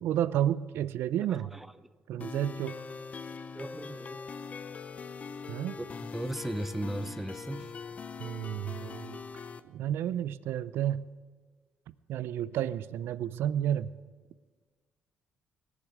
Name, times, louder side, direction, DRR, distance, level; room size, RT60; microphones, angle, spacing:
voice 1, 0.0-1.5 2.1-2.8 5.5-5.8 8.2-9.2 9.6-11.1 12.1-14.0, right 11 dB, 75° right, 0.5 m, -31 dB
voice 2, 1.3-1.7 3.5-4.2 5.8-7.7, right 1 dB, 5° right, 0.6 m, -37 dB
sound 1, 2.2-9.6, left 5 dB, 35° left, 0.7 m, -42 dB
18.5 x 7.3 x 9.2 m
cardioid pair, 120°, 4 cm